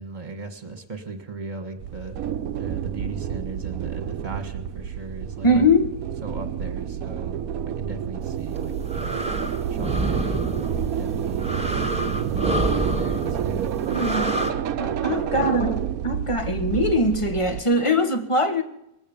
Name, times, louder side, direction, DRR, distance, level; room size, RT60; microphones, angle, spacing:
voice 1, 0.0-2.2 2.6-5.5 6.2-7.4 7.7-10.7 11.0-11.6 12.2-13.7, right 3 dB, 30° right, 1.8 m, -37 dB
sound 1, 1.8-17.6, right 9 dB, 75° right, 1.1 m, -29 dB
voice 2, 5.4-6.0 13.9-14.3 14.8-18.6, left 1 dB, 20° left, 1.2 m, -22 dB
sound 2, 8.4-14.5, right 1 dB, 5° right, 1.5 m, -28 dB
20.5 x 8.8 x 7.0 m
omnidirectional pair, 1.5 m